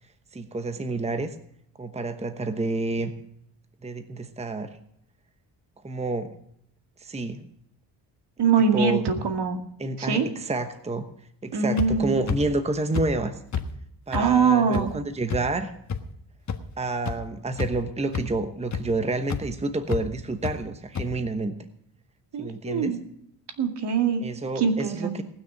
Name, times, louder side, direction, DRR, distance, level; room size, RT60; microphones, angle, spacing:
voice 1, 0.3-1.3 1.8-3.1 3.8-4.8 5.8-6.3 7.0-7.4 8.7-9.0 9.8-11.1 11.4-13.4 14.1-15.7 16.8-21.6 22.4-23.0 24.2-25.2, right 2 dB, 15° right, 8 dB, 1.0 m, -29 dB
voice 2, 8.4-9.6 10.0-10.3 11.5-12.2 14.1-14.9 22.3-23.0 23.6-24.2 24.6-25.2, right 6 dB, 65° right, 5 dB, 2.3 m, -23 dB
sound 1, 11.8-11.9 12.3-12.4 12.9-13.0 13.5-13.6 14.1-14.2 14.7-14.8 15.3-15.4 15.9-16.0 16.5-16.6 17.0-17.1 17.5-17.8 18.1-18.2 18.7-18.8 19.3-19.4 19.9-20.0 20.4-20.5 20.9-21.0, left 7 dB, 40° left, 1.4 m, -28 dB
19.0 x 6.4 x 8.6 m, 0.72 s
cardioid pair, 100°, 43 cm